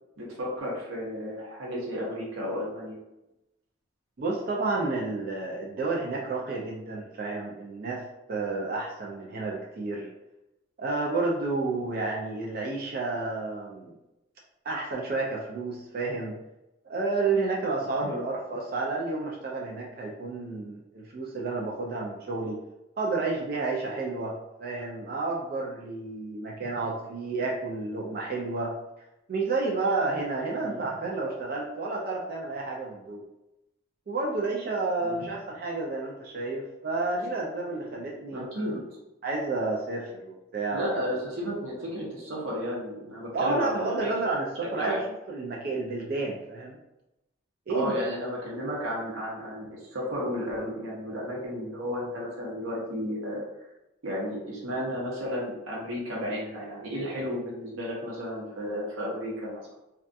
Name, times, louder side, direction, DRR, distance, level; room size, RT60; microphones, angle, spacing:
voice 1, 0.2-3.0 18.1-18.2 30.6-30.8 35.0-35.3 38.3-38.8 40.7-44.1 44.8-45.0 47.7-53.4 54.0-59.6, equal, 80° right, -4 dB, 0.7 m, -33 dB
voice 2, 4.2-8.0 8.3-10.1 10.8-14.0 14.7-16.3 16.8-22.6 23.0-28.7 29.3-33.2 34.1-38.8 39.2-41.1 43.3-46.8 47.7-48.1, right 3 dB, 45° right, -2 dB, 0.3 m, -31 dB
2.4 x 2.2 x 2.6 m, 0.93 s
head